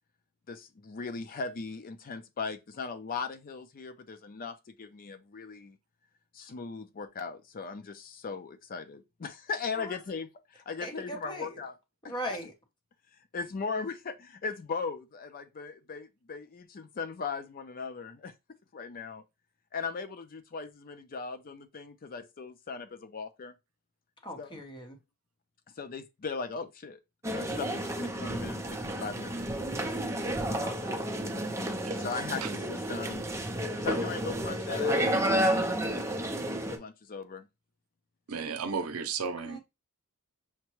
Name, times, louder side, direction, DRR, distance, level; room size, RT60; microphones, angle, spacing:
voice 1, 0.5-5.8 6.3-11.8 12.0-12.1 13.3-18.3 18.7-19.2 19.7-23.5 24.4-24.6 25.8-27.0 27.3-29.4 31.6-33.3 33.8-36.4 36.7-37.5, left 5 dB, 40° left, 0.5 m, -38 dB
voice 2, 10.8-11.6 12.1-12.5 24.2-25.0 30.5-31.0 39.2-39.6, equal, 20° left, 0.9 m, -39 dB
sound 1, 27.2-36.8, right 1 dB, 15° right, 0.6 m, -31 dB
voice 3, 38.3-39.6, right 5 dB, 70° right, 0.6 m, -34 dB
5.7 x 2.2 x 3.0 m
head